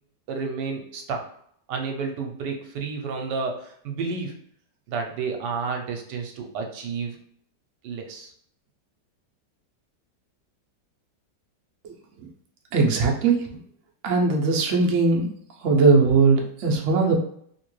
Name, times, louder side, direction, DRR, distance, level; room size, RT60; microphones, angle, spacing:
voice 1, 0.3-1.3 1.7-4.4 4.9-7.2 7.8-8.3, right 4 dB, 80° right, 2 dB, 1.2 m, -31 dB
voice 2, 12.7-13.3 14.0-15.3 15.6-17.1, right 4 dB, 65° right, 0 dB, 0.8 m, -19 dB
2.9 x 2.8 x 3.0 m, 0.66 s
omnidirectional pair, 1.9 m